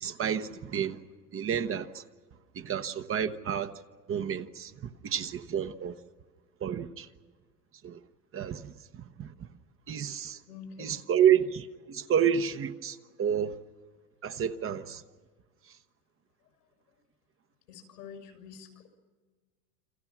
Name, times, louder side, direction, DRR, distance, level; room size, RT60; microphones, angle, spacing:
voice 1, 0.0-1.0 1.3-2.0 2.5-3.7 4.1-6.0 6.6-7.1 7.8-8.0 8.3-9.5 9.9-10.4 10.8-13.6 14.2-15.0, right 8 dB, 30° right, 1.1 m, -30 dB
voice 2, 10.5-11.0 17.7-18.9, left 6 dB, 90° left, 6.3 m, -47 dB
29.0 x 26.0 x 6.1 m
supercardioid pair, 110°, 45 cm